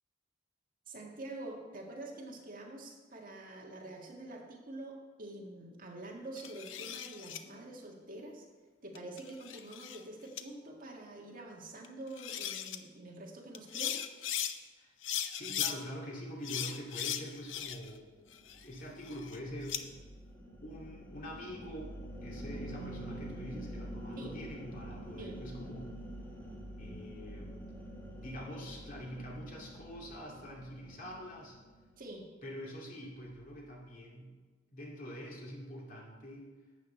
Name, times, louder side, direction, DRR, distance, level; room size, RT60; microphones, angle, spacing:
voice 1, 0.9-8.5 8.8-14.0 24.2-24.3 25.2-25.4 32.0-32.2, right 2 dB, 45° right, -1 dB, 1.8 m, -46 dB
sound 1, 6.4-7.4 9.0-10.0 10.4-10.5 11.8-11.9 12.2-12.8 13.5-14.5 15.0-15.8 16.4-18.0 18.3-19.8, left 10 dB, 85° left, 0.7 m, -38 dB
voice 2, 15.3-18.1 18.5-19.9 20.6-25.9 26.8-27.7 28.2-31.6 32.4-34.3 34.7-36.5, equal, 45° left, -2 dB, 2.4 m, -45 dB
sound 2, 17.5-32.0, right 1 dB, 10° left, 1.5 m, -47 dB
12.0 x 8.1 x 4.4 m, 1.3 s
head